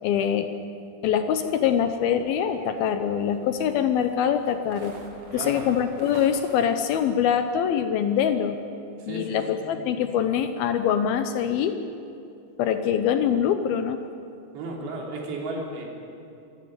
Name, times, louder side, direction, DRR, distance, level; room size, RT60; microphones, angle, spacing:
voice 1, 0.0-0.5 1.0-5.0 5.3-8.6 9.1-11.8 12.6-14.0, left 8 dB, 75° left, 8 dB, 2.4 m, -24 dB
sound 1, 1.3-6.6, right 3 dB, 45° right, 2.6 m, -48 dB
voice 2, 5.3-5.6 9.0-9.4 9.7-9.9 14.5-15.9, right 2 dB, 80° right, -1 dB, 5.4 m, -34 dB
26.5 x 12.5 x 9.6 m, 2.6 s
omnidirectional pair, 4.9 m